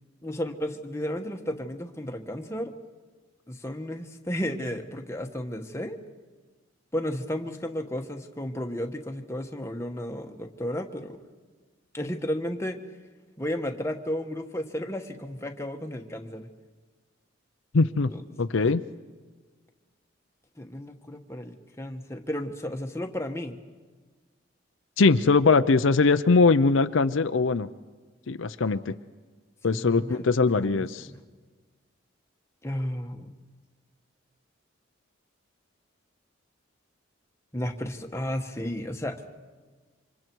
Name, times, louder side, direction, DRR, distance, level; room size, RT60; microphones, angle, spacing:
voice 1, 0.2-2.7 3.5-6.0 6.9-11.2 11.9-12.8 13.4-16.5 18.1-18.2 20.6-23.6 29.7-30.2 30.5-31.2 32.6-33.3 37.5-39.2, left 1 dB, 15° left, 4 dB, 1.2 m, -33 dB
voice 2, 17.7-18.1 18.4-18.8 25.0-27.7 28.3-28.9 29.6-31.1, left 4 dB, 70° left, 10 dB, 0.6 m, -21 dB
28.0 x 25.5 x 4.6 m, 1.4 s
head